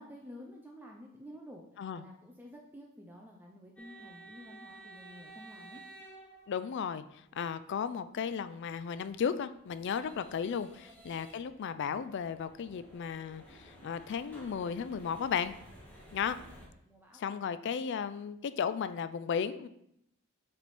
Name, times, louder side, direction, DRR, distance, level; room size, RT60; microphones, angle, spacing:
voice 1, 0.0-5.8 10.7-11.0 16.5-17.2, equal, 10° right, -1 dB, 0.5 m, -51 dB
sound 1, 3.8-7.0 9.0-16.7, right 1 dB, 5° left, 1.2 m, -54 dB
voice 2, 6.5-15.5 16.1-16.4 17.2-19.7, left 7 dB, 55° left, 13 dB, 0.3 m, -35 dB
7.4 x 3.4 x 4.2 m, 0.76 s
head